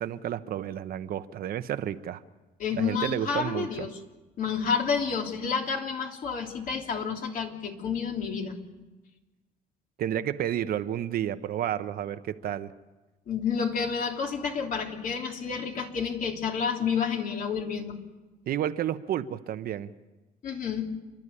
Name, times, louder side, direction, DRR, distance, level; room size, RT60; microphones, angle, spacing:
voice 1, 0.0-2.2 2.7-3.9 10.0-12.7 18.5-19.9, right 11 dB, 60° right, 11 dB, 1.0 m, -31 dB
voice 2, 2.6-3.9 4.4-8.6 13.3-18.0 20.4-20.9, left 6 dB, 55° left, 2 dB, 3.1 m, -30 dB
29.0 x 12.0 x 9.8 m, 1.1 s
cardioid pair, 110°, 17 cm